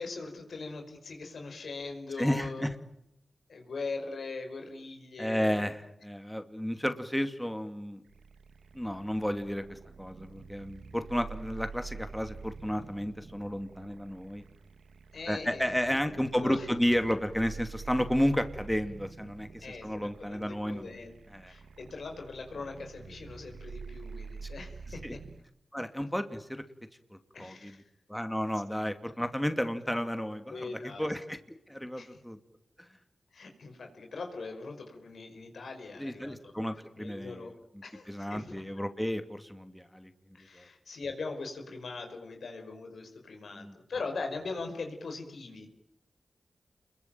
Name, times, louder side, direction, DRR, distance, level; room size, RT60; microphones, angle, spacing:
voice 1, 0.0-2.7 3.5-5.6 15.1-16.7 19.6-21.1 21.5-25.2 27.3-27.8 30.5-31.1 32.0-32.1 33.3-36.5 37.0-37.5 37.8-38.5 40.3-45.7, left 3 dB, 80° left, 4 dB, 5.3 m, -41 dB
voice 2, 2.2-2.8 5.2-8.0 8.7-14.4 15.3-20.9 21.3-21.5 24.4-24.5 25.0-25.2 25.7-26.6 27.1-27.8 28.1-31.4 31.7-32.4 32.8-32.9 36.0-37.5 38.1-40.1 40.5-40.7 43.6-43.8, equal, 5° left, 8 dB, 2.6 m, -32 dB
sound 1, 8.1-25.4, right 5 dB, 90° right, 1.4 m, -47 dB
28.5 x 22.5 x 9.1 m, 0.75 s
cardioid pair, 40°, 0 cm